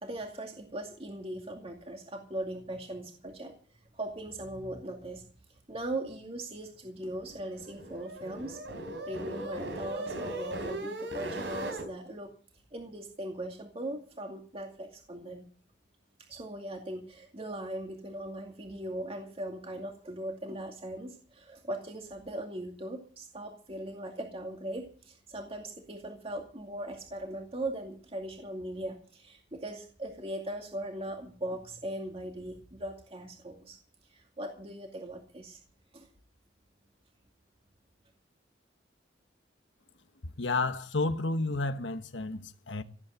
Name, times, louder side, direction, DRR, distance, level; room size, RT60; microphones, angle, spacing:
voice 1, 0.0-3.5 3.9-12.3 12.7-15.5 16.3-33.8 34.1-35.6 35.9-36.1, right 1 dB, 35° right, 2.3 m, -39 dB
sound 1, 7.2-11.9, right 1 dB, 75° right, 4.2 m, -38 dB
voice 2, 40.4-42.8, left 3 dB, 90° left, 1.2 m, -31 dB
17.0 x 8.7 x 8.2 m
head